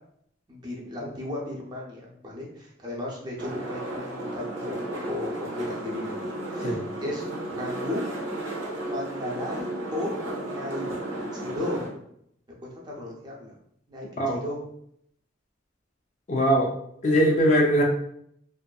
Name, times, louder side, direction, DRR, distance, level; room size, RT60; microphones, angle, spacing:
voice 1, 0.5-4.8 5.1-8.2 8.8-10.9 11.3-11.9 12.8-13.5 13.9-14.6, left 1 dB, 20° right, -3 dB, 0.6 m, -35 dB
sound 1, 3.4-11.9, right 1 dB, 70° right, 0.7 m, -33 dB
voice 2, 16.3-16.7 17.0-17.8, equal, 35° left, 0 dB, 0.3 m, -21 dB
2.5 x 2.4 x 2.3 m, 0.71 s
head